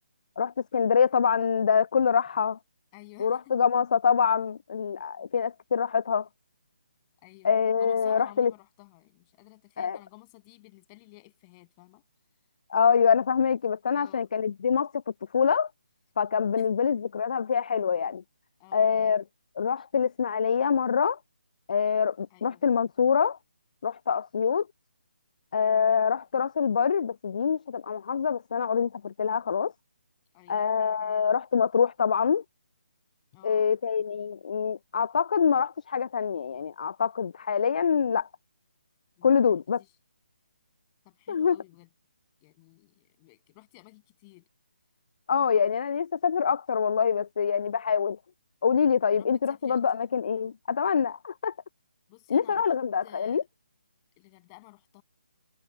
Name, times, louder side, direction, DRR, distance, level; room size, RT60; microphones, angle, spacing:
voice 1, 0.4-2.6 3.2-6.3 7.4-8.5 9.8-10.0 12.7-15.0 15.3-15.7 16.2-18.2 18.7-19.2 19.6-21.2 21.7-23.4 23.8-24.7 25.5-29.7 30.5-32.4 33.4-38.3 39.2-39.8 41.3-41.6 45.3-48.2 48.6-51.5 52.3-53.4, left 6 dB, 45° left, 0.5 m, -25 dB
voice 2, 2.9-3.6 7.2-12.0 13.9-14.3 16.6-16.9 18.6-19.1 22.3-22.7 30.3-30.7 33.3-33.7 39.2-39.5 39.8-39.9 41.0-41.9 42.4-44.5 49.1-49.9 52.1-52.7 53.0-53.5 54.2-55.0, left 26 dB, 20° left, 7.8 m, -53 dB
figure-of-eight pair, 145°, 6 cm